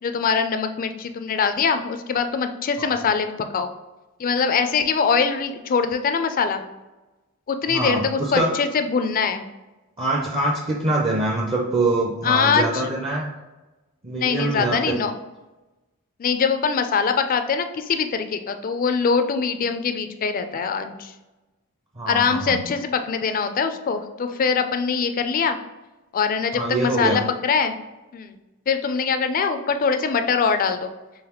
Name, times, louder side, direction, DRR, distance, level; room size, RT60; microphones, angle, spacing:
voice 1, 0.0-3.3 3.5-3.7 4.2-6.6 7.5-9.4 12.2-12.9 14.1-15.1 16.2-21.1 22.1-25.6 26.1-27.8 28.1-28.3 28.7-30.9, left 5 dB, 40° left, 8 dB, 0.3 m, -23 dB
voice 2, 7.7-8.6 10.0-13.3 14.0-15.0 22.0-22.6 26.5-27.2, right 2 dB, 25° right, -2 dB, 0.5 m, -24 dB
3.9 x 3.4 x 3.0 m, 1.1 s
head